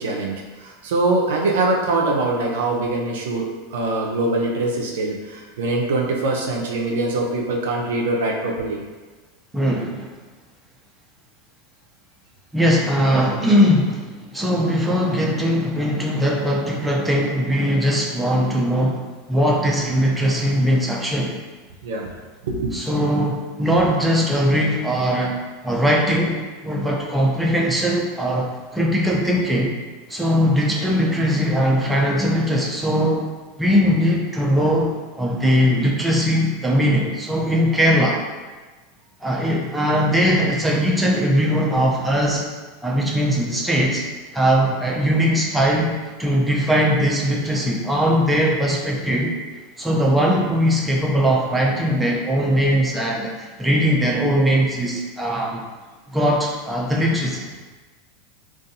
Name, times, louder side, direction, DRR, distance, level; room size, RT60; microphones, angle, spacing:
voice 1, 0.0-8.8 21.8-22.1 22.4-22.7, right 2 dB, 75° right, 0 dB, 0.4 m, -23 dB
voice 2, 9.5-10.1 12.5-14.1 14.3-21.3 22.7-25.4 25.6-26.4 26.6-29.7 30.1-33.2 33.6-34.9 35.2-38.2 39.2-42.4 42.8-44.0 44.3-49.3 49.8-55.6 56.1-57.5, equal, 5° right, -3 dB, 0.5 m, -20 dB
2.5 x 2.3 x 2.7 m, 1.3 s
hypercardioid pair, 100°, 0 cm